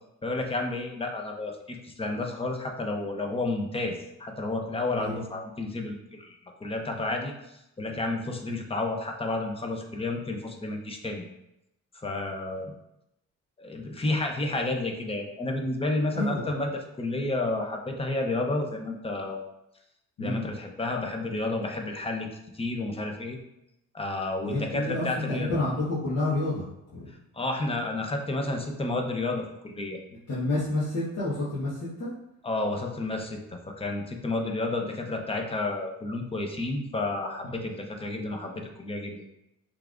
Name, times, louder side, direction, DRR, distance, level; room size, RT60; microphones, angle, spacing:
voice 1, 0.2-7.3 7.8-11.2 11.9-12.7 13.6-19.4 20.2-22.3 22.5-23.4 23.9-25.6 27.3-30.0 32.4-33.4 33.8-39.2, left 2 dB, 20° left, 2 dB, 0.8 m, -31 dB
voice 2, 16.1-16.5 20.2-20.4 24.4-26.6 26.9-27.0 30.3-32.1, left 2 dB, 60° left, -10 dB, 1.5 m, -29 dB
5.6 x 3.5 x 2.6 m, 0.85 s
cardioid pair, 90°, 30 cm